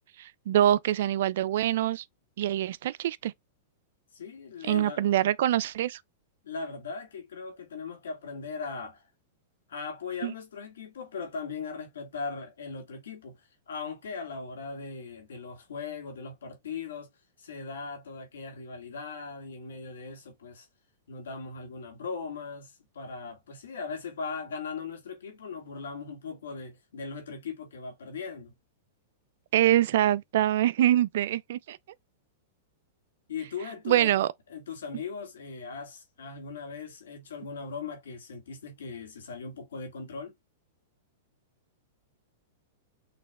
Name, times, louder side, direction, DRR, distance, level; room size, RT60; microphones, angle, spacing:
voice 1, 0.2-2.0 2.4-3.3 4.6-6.0 10.2-10.3 29.5-31.8 33.9-34.3, right 12 dB, 70° right, 0.3 m, -24 dB
voice 2, 4.1-5.0 6.4-9.0 9.7-17.1 17.4-20.7 21.1-28.5 33.3-34.1 34.5-40.3, left 5 dB, 85° left, 2.0 m, -39 dB
6.0 x 2.9 x 2.4 m
hypercardioid pair, 125°, 0 cm